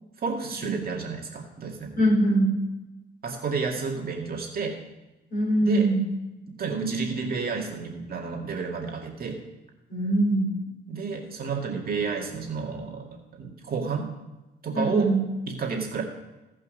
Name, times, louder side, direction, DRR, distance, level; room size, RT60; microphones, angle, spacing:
voice 1, 0.2-1.9 3.2-4.8 5.6-5.9 6.6-9.4 10.9-14.1 14.6-15.1 15.5-16.0, right 5 dB, 50° right, 0 dB, 2.1 m, -30 dB
voice 2, 2.0-2.6 5.3-6.0 9.9-10.5 14.7-15.2, right 1 dB, 45° left, -2 dB, 4.5 m, -22 dB
16.5 x 5.6 x 5.2 m, 1.1 s
cardioid pair, 90°, 20 cm